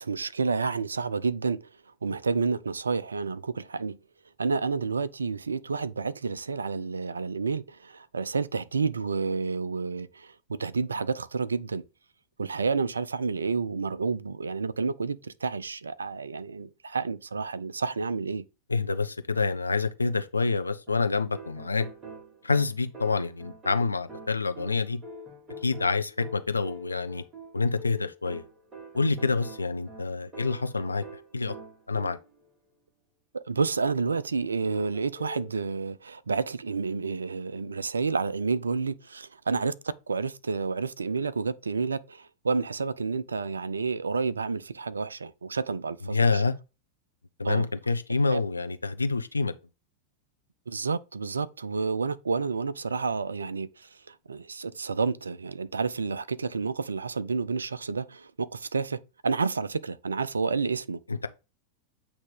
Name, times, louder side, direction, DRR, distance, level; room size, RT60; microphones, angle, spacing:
voice 1, 0.0-1.7 2.0-4.0 4.4-11.8 12.4-18.4 33.3-46.4 47.4-47.7 48.3-48.4 50.7-61.0, right 4 dB, 75° right, 0.4 m, -30 dB
voice 2, 18.7-21.9 22.4-25.0 25.6-27.2 27.5-28.4 28.9-31.0 31.3-31.5 31.9-32.2 46.0-46.5 47.4-49.5 61.1-61.3, left 4 dB, 80° left, 0.6 m, -27 dB
sound 1, 20.9-32.5 34.7-35.5, equal, 20° right, 2.5 m, -45 dB
8.4 x 2.9 x 5.1 m
figure-of-eight pair, 90°, 0 cm